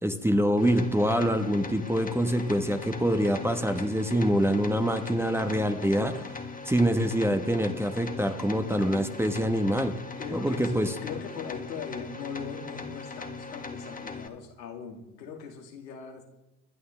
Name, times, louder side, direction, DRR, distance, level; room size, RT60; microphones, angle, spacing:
voice 1, 0.0-6.4 6.6-9.9 10.3-10.9, equal, 5° right, 7 dB, 1.3 m, -25 dB
sound 1, 0.6-14.3, left 4 dB, 15° left, 1.7 m, -40 dB
voice 2, 10.2-16.2, left 6 dB, 80° left, 1 dB, 2.7 m, -40 dB
25.5 x 11.0 x 3.4 m, 0.95 s
hypercardioid pair, 75°, 49 cm